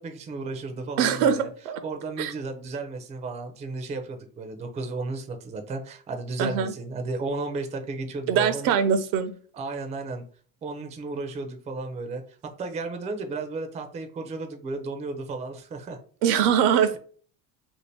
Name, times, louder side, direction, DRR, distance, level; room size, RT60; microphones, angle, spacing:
voice 1, 0.0-1.5 1.8-8.8 9.5-10.2 10.6-16.0, right 3 dB, 15° right, 5 dB, 0.4 m, -34 dB
voice 2, 1.0-1.8 2.2-2.3 6.4-6.7 8.3-9.3 16.2-17.0, right 8 dB, 80° right, 10 dB, 0.6 m, -22 dB
2.7 x 2.5 x 3.2 m, 0.43 s
supercardioid pair, 110°, 45 cm